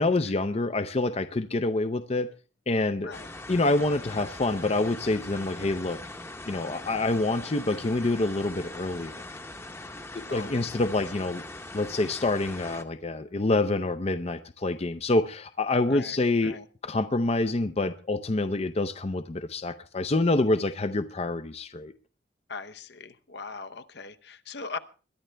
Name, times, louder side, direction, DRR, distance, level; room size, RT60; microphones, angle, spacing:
voice 1, 0.0-2.3 2.7-3.1 3.5-6.0 6.5-9.2 10.1-11.4 11.7-16.6 16.8-21.9, left 2 dB, 35° left, 0.6 m, -27 dB
sound 1, 3.1-12.8, left 2 dB, 15° left, 0.9 m, -41 dB
voice 2, 15.9-16.7 22.5-24.8, left 4 dB, 65° left, 0.9 m, -40 dB
22.0 x 11.0 x 3.4 m
head